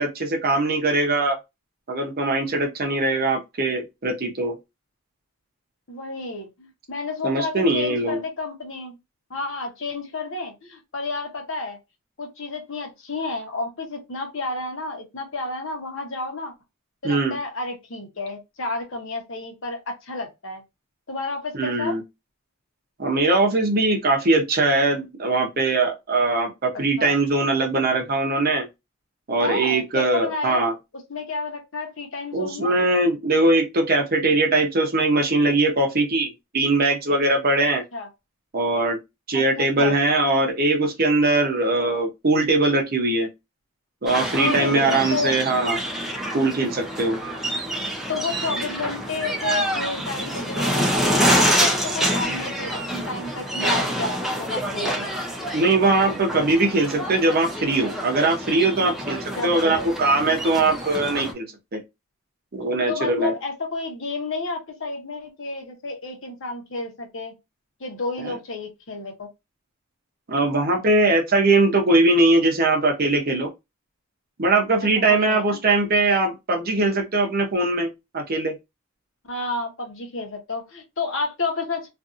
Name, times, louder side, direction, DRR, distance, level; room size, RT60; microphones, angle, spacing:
voice 1, 0.0-1.4 1.9-4.5 7.2-8.2 17.0-17.3 21.5-22.0 23.0-28.7 29.3-30.7 32.3-37.8 38.5-39.0 39.3-43.3 44.0-45.8 46.3-47.2 55.5-61.4 61.7-61.8 62.5-63.3 70.3-73.5 74.4-77.9 78.1-78.5, right 2 dB, 45° right, 0.7 m, -21 dB
voice 2, 5.9-9.0 9.3-11.8 12.2-16.5 17.0-20.6 21.1-22.0 27.0-27.1 29.4-30.7 30.9-32.7 37.9-38.1 39.3-39.9 44.4-45.3 48.1-55.1 59.4-59.9 62.9-67.3 67.8-69.3 75.1-75.6 79.3-81.9, left 3 dB, 60° left, 0.9 m, -31 dB
sound 1, 44.1-61.3, equal, ahead, 0.5 m, -26 dB
2.5 x 2.5 x 2.5 m
head